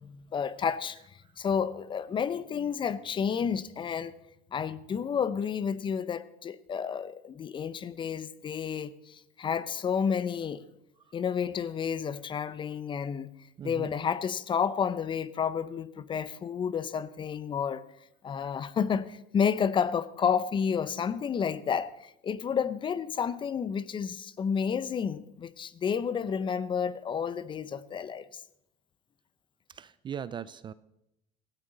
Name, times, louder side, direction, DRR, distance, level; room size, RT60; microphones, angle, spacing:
voice 1, 0.0-4.1 4.5-10.6 11.1-13.3 13.6-17.9 18.2-28.2, left 7 dB, 25° left, 0.6 m, -31 dB
voice 2, 13.6-13.9 29.7-30.7, right 8 dB, 25° right, 0.4 m, -39 dB
16.5 x 13.5 x 3.9 m
supercardioid pair, 115°, 18 cm